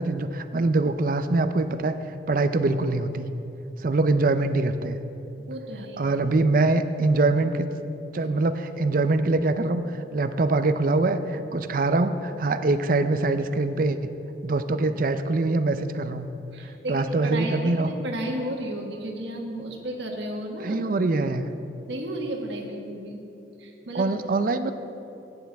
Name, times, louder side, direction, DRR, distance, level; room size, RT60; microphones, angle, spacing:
voice 1, 0.0-2.0 2.3-3.3 3.8-5.0 6.0-7.7 8.1-14.0 14.4-16.3 16.6-17.9 20.6-21.5 23.9-24.7, right 2 dB, 50° right, 10 dB, 0.5 m, -24 dB
voice 2, 5.5-6.1 16.5-21.0 21.9-23.2 23.6-24.1, right 1 dB, 85° right, 1 dB, 1.5 m, -33 dB
16.0 x 9.8 x 3.5 m, 3.0 s
head